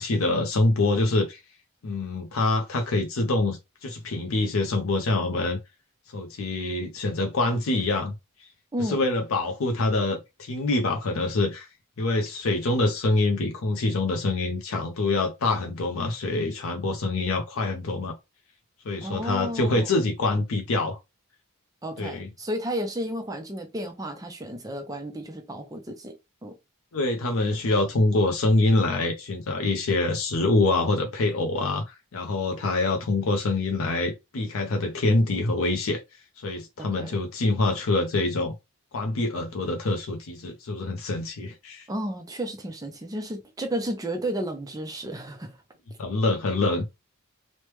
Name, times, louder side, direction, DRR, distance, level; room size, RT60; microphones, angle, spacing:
voice 1, 0.0-1.4 1.8-5.6 6.1-8.1 8.8-11.7 12.0-18.1 18.9-21.0 22.0-22.3 26.9-31.8 32.1-36.0 36.4-38.5 38.9-41.9 46.0-46.9, left 2 dB, 70° left, 0.5 m, -25 dB
voice 2, 19.0-19.9 21.8-26.1 26.4-26.6 36.8-37.2 41.9-45.6, right 1 dB, 15° right, 0.4 m, -32 dB
3.1 x 2.1 x 3.1 m
head